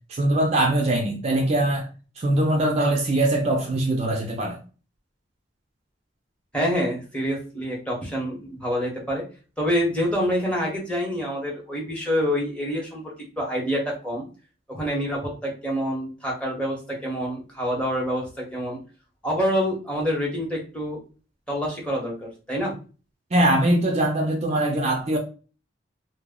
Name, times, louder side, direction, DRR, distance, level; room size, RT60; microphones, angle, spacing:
voice 1, 0.1-1.9 2.2-4.6 23.3-25.2, right 1 dB, 35° right, 0.4 m, -22 dB
voice 2, 6.5-9.2 9.6-14.2 14.7-18.8 19.2-21.0 21.5-22.7, equal, 5° left, 0.8 m, -27 dB
2.1 x 2.0 x 3.4 m
head